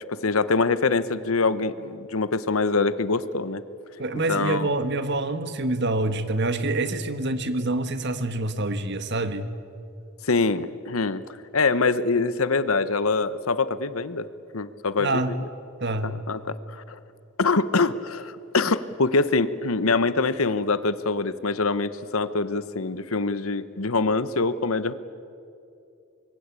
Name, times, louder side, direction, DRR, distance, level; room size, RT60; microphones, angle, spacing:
voice 1, 0.1-3.6 4.3-4.7 10.3-11.2 11.5-14.3 14.5-15.4 16.0-17.0 17.4-24.9, left 3 dB, 90° left, 14 dB, 1.1 m, -24 dB
voice 2, 4.0-9.5 15.0-15.3 15.8-16.2, right 2 dB, 55° right, 10 dB, 1.6 m, -26 dB
25.0 x 22.5 x 8.3 m, 2.6 s
head